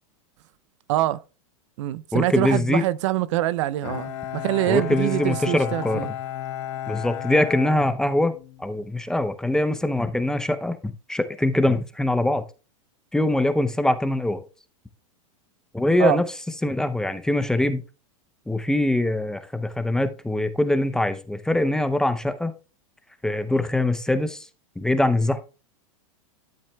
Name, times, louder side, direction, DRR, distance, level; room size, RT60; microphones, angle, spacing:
voice 1, 0.9-1.2 1.8-6.1 16.0-16.2, right 15 dB, 60° right, 0.5 m, -24 dB
voice 2, 2.1-2.8 4.7-6.0 6.9-8.3 8.6-12.4 13.1-14.4 15.7-16.2 16.6-17.8 18.5-22.5 23.2-24.4 24.8-25.4, left 1 dB, 5° left, 0.6 m, -23 dB
Bowed string instrument, 3.8-8.7, left 11 dB, 65° left, 1.0 m, -33 dB
12.0 x 7.4 x 2.3 m
supercardioid pair, 135°, 17 cm